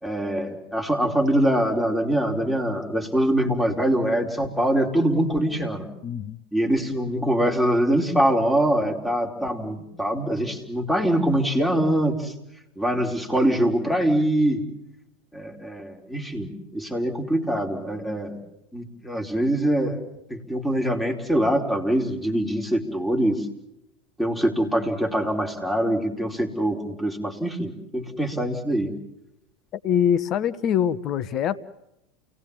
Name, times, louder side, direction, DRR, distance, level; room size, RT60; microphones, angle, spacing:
voice 1, 0.0-5.9 6.5-12.3 12.8-14.6 15.3-18.4 18.7-20.0 20.3-23.4 24.2-28.9, right 1 dB, 5° left, 2 dB, 4.5 m, -23 dB
voice 2, 6.0-6.4 29.8-31.6, left 9 dB, 45° left, 13 dB, 1.0 m, -23 dB
29.0 x 18.5 x 7.3 m, 0.85 s
hypercardioid pair, 85°, 0 cm